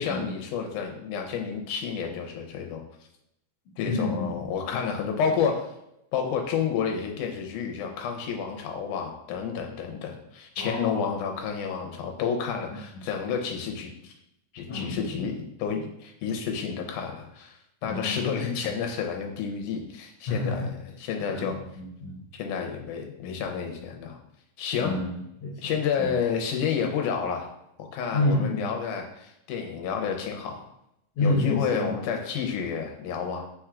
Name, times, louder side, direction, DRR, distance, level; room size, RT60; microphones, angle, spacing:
voice 1, 0.0-2.8 3.8-5.7 6.1-14.1 14.5-17.5 17.8-21.6 22.3-24.2 24.6-24.9 25.6-27.5 27.8-30.6 31.2-33.5, left 6 dB, 90° left, 2 dB, 2.2 m, -30 dB
voice 2, 3.9-4.5 10.6-11.1 14.7-15.3 17.8-18.3 20.3-20.7 21.3-22.2 24.8-25.6 26.0-26.1 28.1-28.7 31.2-31.9, left 2 dB, 65° left, -3 dB, 1.5 m, -29 dB
4.4 x 4.1 x 2.4 m, 0.80 s
omnidirectional pair, 3.5 m